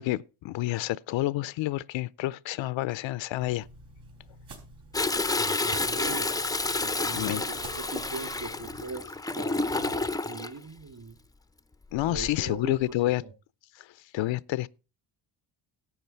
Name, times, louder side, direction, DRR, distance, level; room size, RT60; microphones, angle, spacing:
voice 1, 0.0-3.7 7.1-7.4 11.9-13.2 13.8-14.7, left 16 dB, 65° left, 0.5 m, -29 dB
sound 1, 3.4-8.8, right 2 dB, 80° right, 4.2 m, -48 dB
Toilet flush, 4.9-10.5 12.0-12.4 12.9-13.0, left 3 dB, 10° left, 0.4 m, -30 dB
voice 2, 5.3-6.3 6.7-11.2 12.1-13.3, right 3 dB, 45° right, 3.1 m, -41 dB
12.5 x 8.0 x 4.5 m
cardioid pair, 75°, 49 cm